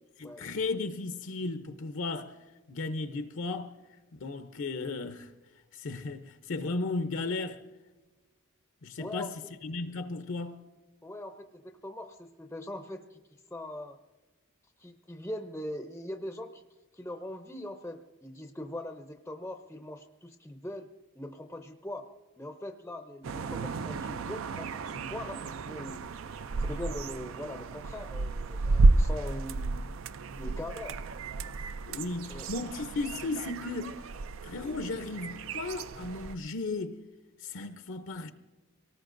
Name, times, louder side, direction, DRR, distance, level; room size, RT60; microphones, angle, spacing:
voice 1, 0.2-2.3 2.7-3.7 4.2-5.3 5.7-7.6 8.8-9.3 9.6-10.6 31.9-34.1 34.4-37.0 37.4-38.3, left 3 dB, 65° left, 0.6 m, -35 dB
voice 2, 9.0-9.3 11.0-13.2 13.5-14.0 14.8-16.6 16.9-20.9 21.1-22.1 22.4-26.1 26.6-30.0 30.4-31.0 32.3-32.5, left 1 dB, 10° left, 0.5 m, -41 dB
sound 1, 23.2-36.3, right 3 dB, 70° right, 0.4 m, -31 dB
24.5 x 18.5 x 2.6 m
head